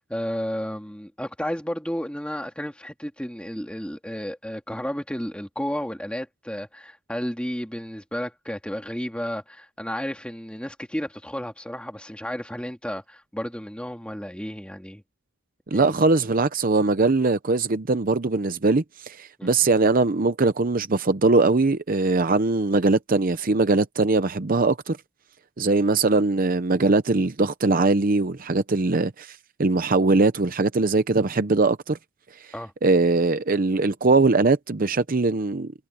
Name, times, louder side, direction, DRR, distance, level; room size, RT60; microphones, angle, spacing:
voice 1, 0.0-15.0 15.7-15.9 19.4-19.5 32.5-32.7, equal, 5° left, 2.7 m, -32 dB
voice 2, 15.7-25.0 25.6-32.0 32.4-32.5 32.8-35.7, right 3 dB, 45° right, 0.7 m, -21 dB
head